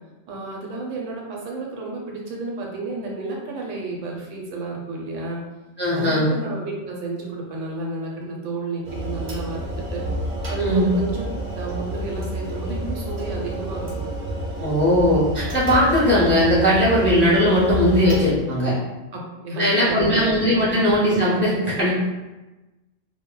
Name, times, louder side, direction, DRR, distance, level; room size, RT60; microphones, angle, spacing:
voice 1, 0.3-5.4 5.9-10.1 10.5-11.2 11.6-14.1 19.1-20.3 20.7-20.8, right 3 dB, 85° right, -1 dB, 1.0 m, -31 dB
voice 2, 5.8-6.3 10.6-10.9 14.6-18.7 19.5-21.9, equal, 15° left, -9 dB, 0.4 m, -19 dB
sound 1, 8.8-18.2, right 1 dB, 45° right, 0.8 m, -29 dB
2.2 x 2.0 x 3.6 m, 1.1 s
omnidirectional pair, 1.3 m